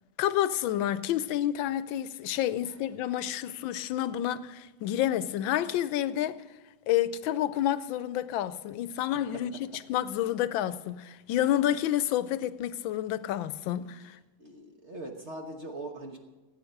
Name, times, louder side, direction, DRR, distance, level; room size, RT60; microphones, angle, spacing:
voice 1, 0.2-6.4 6.9-9.5 9.9-14.2, left 12 dB, 80° left, 1.4 m, -29 dB
voice 2, 9.0-9.6 14.0-14.1 14.4-16.2, right 2 dB, 40° right, 1.2 m, -42 dB
16.5 x 8.7 x 6.5 m
omnidirectional pair, 2.1 m